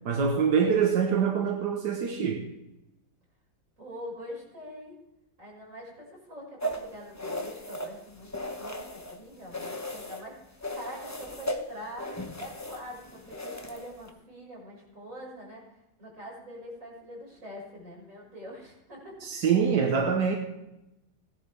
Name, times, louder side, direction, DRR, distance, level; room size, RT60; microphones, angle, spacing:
voice 1, 0.1-2.5 19.2-20.4, right 6 dB, 85° right, 1 dB, 1.8 m, -25 dB
voice 2, 0.6-0.9 3.8-5.0 5.4-10.4 10.7-12.1 12.4-19.3, equal, 50° right, -5 dB, 6.5 m, -44 dB
sound 1, 6.6-9.2 9.5-10.3 10.6-14.1, equal, 15° left, 0.7 m, -36 dB
18.0 x 11.0 x 3.5 m, 0.92 s
omnidirectional pair, 1.8 m